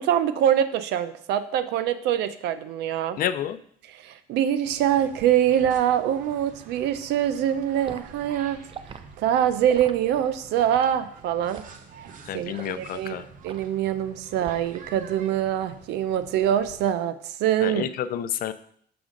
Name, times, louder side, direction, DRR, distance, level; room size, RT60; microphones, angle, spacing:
voice 1, 0.0-3.2 3.9-8.6 9.2-11.6 12.3-13.2 13.4-17.9, right 10 dB, 85° right, 12 dB, 0.6 m, -24 dB
voice 2, 3.2-3.6 12.3-13.3 17.6-18.5, left 10 dB, 60° left, 12 dB, 0.5 m, -29 dB
sound 1, 4.6-16.9, right 5 dB, 50° right, 0.9 m, -48 dB
Liquid, 7.9-8.1 8.7-9.0 9.7-9.9 10.6-10.9 11.5-11.8 12.5-12.8 13.5-13.7 14.4-14.8 15.2-15.4, right 7 dB, 30° right, 0.5 m, -41 dB
6.9 x 6.1 x 3.8 m, 0.63 s
cardioid pair, 110°, 17 cm